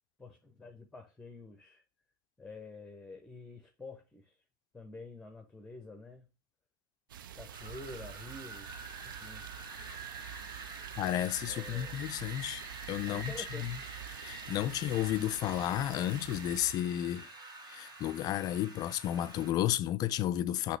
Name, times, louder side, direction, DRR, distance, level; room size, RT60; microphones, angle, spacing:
voice 1, 0.2-1.8 2.4-4.4 4.7-6.3 7.3-9.5 11.5-12.0 13.0-13.8, left 3 dB, 5° left, 0.7 m, -48 dB
sound 1, 7.1-16.7, right 10 dB, 85° right, 0.4 m, -47 dB
Wind, 7.5-19.5, right 3 dB, 55° right, 2.2 m, -47 dB
voice 2, 11.0-13.8 14.1-17.3 17.7-20.8, left 12 dB, 35° left, 0.4 m, -32 dB
5.8 x 2.9 x 3.2 m
hypercardioid pair, 110°, 11 cm